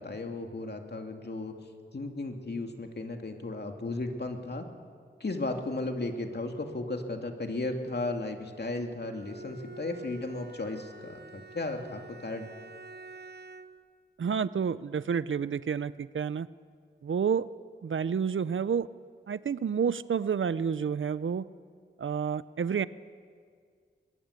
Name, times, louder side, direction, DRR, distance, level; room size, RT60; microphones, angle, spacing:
voice 1, 0.0-1.5 1.9-4.7 5.2-12.5, left 2 dB, 55° left, 3 dB, 2.6 m, -35 dB
Bowed string instrument, 9.0-13.9, right 3 dB, 55° right, 0.9 m, -47 dB
voice 2, 14.2-16.5 17.0-17.5 17.8-18.9 19.3-21.5 22.0-22.9, right 7 dB, 80° right, 16 dB, 0.6 m, -29 dB
22.0 x 21.5 x 8.3 m, 2.1 s
wide cardioid pair, 55°, 20 cm